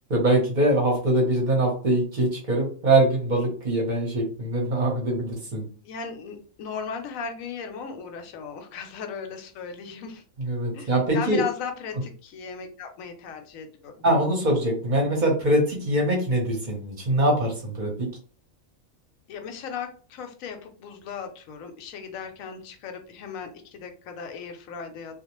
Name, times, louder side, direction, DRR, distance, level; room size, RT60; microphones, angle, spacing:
voice 1, 0.1-5.6 10.4-11.4 14.0-18.1, right 1 dB, 45° right, 0 dB, 0.7 m, -23 dB
voice 2, 5.8-10.2 10.7-13.9 19.3-25.1, left 6 dB, 85° left, 6 dB, 1.0 m, -37 dB
2.4 x 2.0 x 2.9 m, 0.41 s
omnidirectional pair, 1.4 m